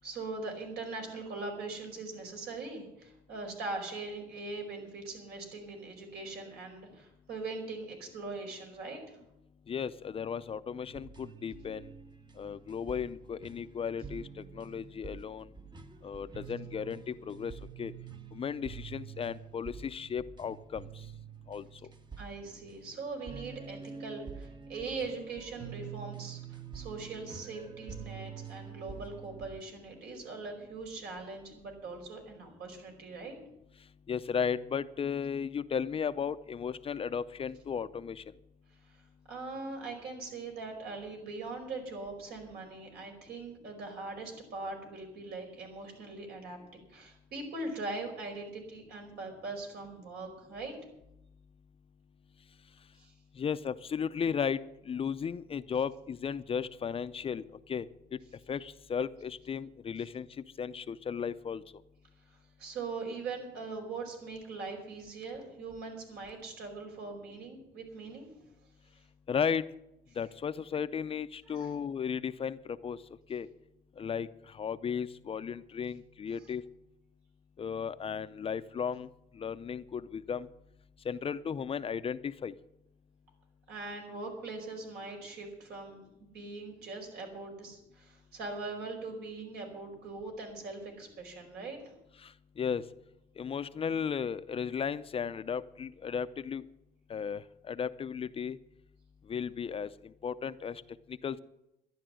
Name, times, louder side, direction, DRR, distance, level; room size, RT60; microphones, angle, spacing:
voice 1, 0.0-9.2 22.2-33.4 38.9-39.0 39.3-50.7 53.0-53.1 62.3-68.3 71.5-71.7 76.3-76.4 83.7-91.8, right 3 dB, 75° right, 2 dB, 4.9 m, -41 dB
voice 2, 9.7-11.9 12.4-14.2 14.5-15.5 16.0-17.5 17.8-17.9 18.3-20.9 21.5-21.7 34.1-38.2 53.4-54.6 54.9-57.4 57.7-57.9 58.5-60.3 60.6-61.6 69.3-69.6 70.2-73.0 73.3-73.5 74.0-74.3 74.6-76.6 77.6-79.1 79.4-80.5 81.1-82.5 92.6-92.8 93.4-96.6 97.1-98.6 99.3-99.9 100.2-100.8 101.2-101.4, left 7 dB, 35° left, 12 dB, 0.5 m, -35 dB
sound 1, 10.9-29.6, right 7 dB, 25° right, 1.0 m, -47 dB
12.0 x 11.0 x 7.7 m, 0.87 s
cardioid pair, 110°, 17 cm